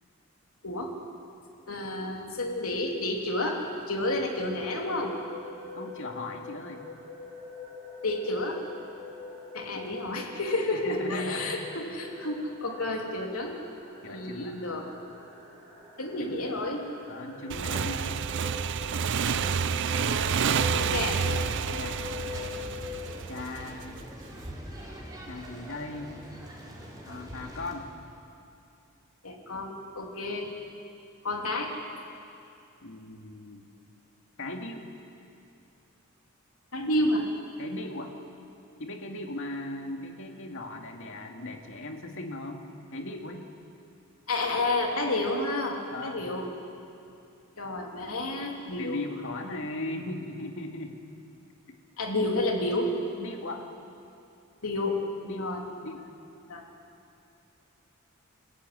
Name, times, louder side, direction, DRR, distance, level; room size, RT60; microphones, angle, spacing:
voice 1, 1.7-5.1 8.0-8.6 9.5-13.6 14.1-14.8 16.0-16.8 19.2-19.5 20.0-21.2 29.2-30.5 31.2-31.7 36.7-37.3 44.3-46.5 47.6-49.0 52.0-52.9 54.6-55.0 55.3-55.6 56.5-56.7, left 2 dB, 80° left, 1 dB, 3.3 m, -30 dB
sound 1, 4.1-23.2, left 5 dB, 35° right, 7.2 m, -43 dB
voice 2, 5.7-6.8 9.7-9.8 10.7-11.5 14.0-14.6 16.2-16.4 17.1-18.2 21.6-22.5 23.3-24.0 25.3-26.1 27.1-27.9 32.8-33.7 34.4-34.9 37.6-38.1 38.8-42.6 42.9-43.5 45.9-46.2 48.8-51.0 51.7-51.8 53.2-53.7 54.8-54.9 55.2-55.5 55.8-56.0, left 2 dB, 65° left, 3 dB, 2.3 m, -38 dB
Motorcycle / Engine, 17.5-23.9, right 6 dB, 55° right, 0.5 m, -29 dB
sound 2, 20.2-27.7, equal, 20° right, 4.5 m, -43 dB
27.0 x 15.0 x 9.5 m, 2.6 s
head